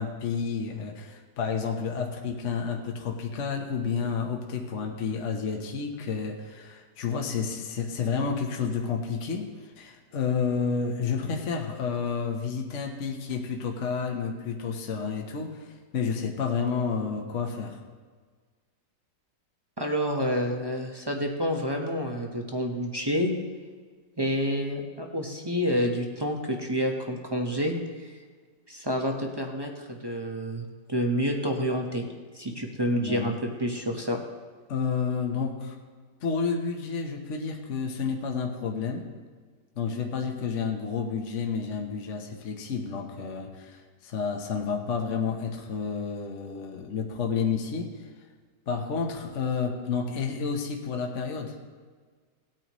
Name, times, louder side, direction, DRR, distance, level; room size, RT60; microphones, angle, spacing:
voice 1, 0.0-17.8 32.9-33.3 34.7-35.8 36.2-39.1 39.8-47.9 48.7-51.6, left 5 dB, 50° left, 2 dB, 1.2 m, -30 dB
voice 2, 19.8-23.3 24.2-28.2 28.7-32.0 32.3-34.2, equal, 20° right, 1 dB, 0.7 m, -28 dB
18.0 x 8.9 x 3.1 m, 1.5 s
omnidirectional pair, 1.9 m